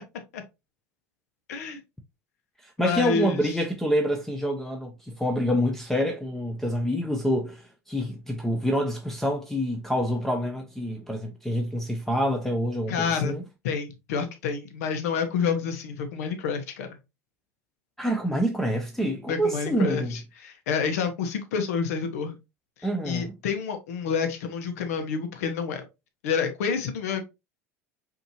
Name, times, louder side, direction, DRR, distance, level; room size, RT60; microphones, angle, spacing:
voice 1, 1.5-1.8 2.8-3.5 12.9-13.3 13.6-16.9 19.3-22.3 23.0-25.8 26.2-27.2, left 6 dB, 75° left, 1.0 m, -28 dB
voice 2, 2.6-13.4 18.0-20.2 22.8-23.3, equal, 5° left, 0.7 m, -27 dB
5.3 x 2.8 x 2.9 m
hypercardioid pair, 80°, 8 cm